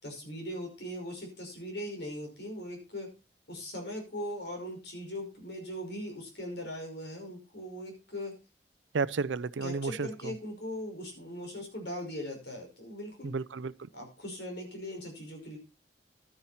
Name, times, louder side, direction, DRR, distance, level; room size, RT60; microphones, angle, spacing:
voice 1, 0.0-3.1 3.5-8.3 9.6-13.3 13.9-15.6, equal, 65° left, 5.5 m, -40 dB
voice 2, 8.9-10.3 13.2-13.9, right 4 dB, 85° right, 0.6 m, -32 dB
12.0 x 9.9 x 4.3 m
head